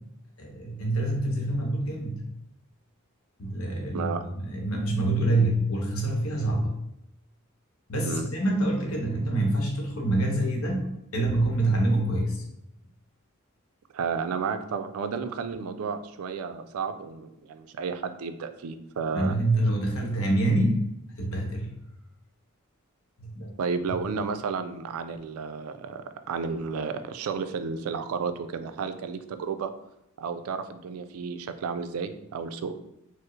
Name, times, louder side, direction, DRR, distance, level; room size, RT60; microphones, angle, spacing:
voice 1, 0.4-2.2 3.4-6.7 7.9-12.4 19.1-20.8 21.2-21.7 23.2-23.5, right 1 dB, 75° left, 1 dB, 0.8 m, -26 dB
voice 2, 3.9-4.3 8.1-8.3 13.9-19.4 23.6-29.7 30.2-32.7, right 5 dB, 85° right, 10 dB, 0.3 m, -32 dB
4.5 x 2.0 x 3.1 m, 0.83 s
head